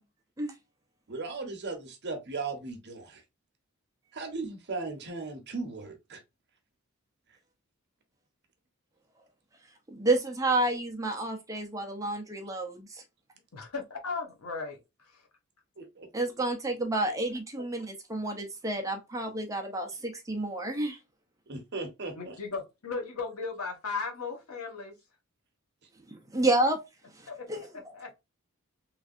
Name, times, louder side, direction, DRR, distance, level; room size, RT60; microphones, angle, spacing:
voice 1, 1.1-3.2 4.1-6.2 15.8-16.1 21.5-22.4, right 3 dB, 50° right, 0.8 m, -37 dB
voice 2, 9.9-13.0 16.1-21.0 26.1-26.8 27.1-27.9, right 2 dB, 15° right, 0.6 m, -30 dB
voice 3, 13.5-14.8 15.1-15.2 22.1-25.0 27.3-27.5 27.9-28.1, left 4 dB, 85° left, 1.0 m, -36 dB
3.2 x 2.6 x 2.4 m
head